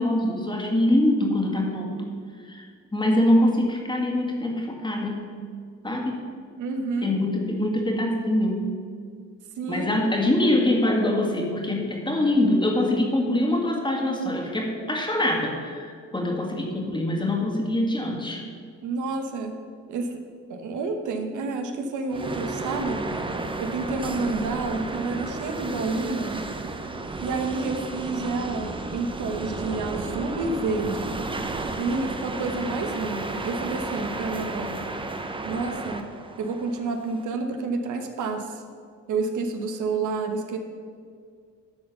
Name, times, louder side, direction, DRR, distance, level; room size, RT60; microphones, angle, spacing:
voice 1, 0.0-2.1 2.5-2.6 2.9-5.3 5.8-6.2 7.0-8.7 9.7-18.4, left 1 dB, 15° left, 0 dB, 1.9 m, -24 dB
voice 2, 6.6-7.1 9.6-10.1 18.8-19.6 19.9-20.2 20.5-23.1 23.6-26.5 27.2-31.2 31.8-34.8 35.4-36.1 36.4-38.6 39.1-40.6, right 3 dB, 80° right, 5 dB, 1.1 m, -29 dB
sound 1, 22.1-37.2, right 2 dB, 15° right, 0.8 m, -33 dB
12.0 x 4.4 x 6.8 m, 2.1 s
cardioid pair, 90°, 30 cm